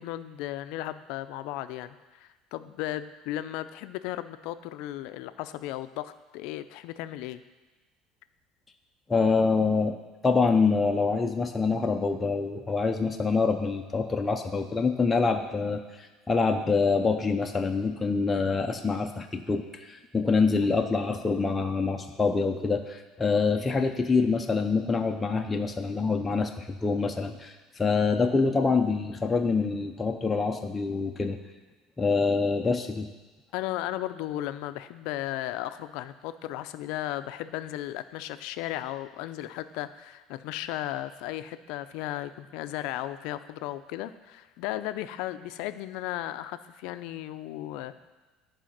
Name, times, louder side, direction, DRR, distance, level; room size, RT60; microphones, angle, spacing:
voice 1, 0.0-7.4 33.5-48.0, left 14 dB, 75° left, 12 dB, 0.4 m, -35 dB
voice 2, 9.1-9.9 10.2-31.4 32.0-33.1, left 4 dB, 15° left, 3 dB, 0.6 m, -26 dB
10.0 x 4.9 x 5.9 m, 1.2 s
cardioid pair, 135°, 0 cm